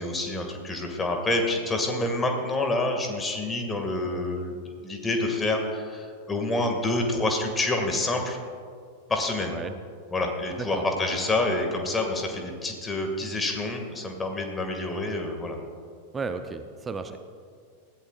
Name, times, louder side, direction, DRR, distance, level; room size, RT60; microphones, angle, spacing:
voice 1, 0.0-4.5 4.8-8.4 9.1-9.5 10.1-15.6, left 2 dB, 15° left, 3 dB, 2.1 m, -27 dB
voice 2, 16.1-17.2, right 4 dB, 15° right, 9 dB, 0.7 m, -33 dB
20.5 x 15.0 x 2.5 m, 2.1 s
figure-of-eight pair, 90°, 0 cm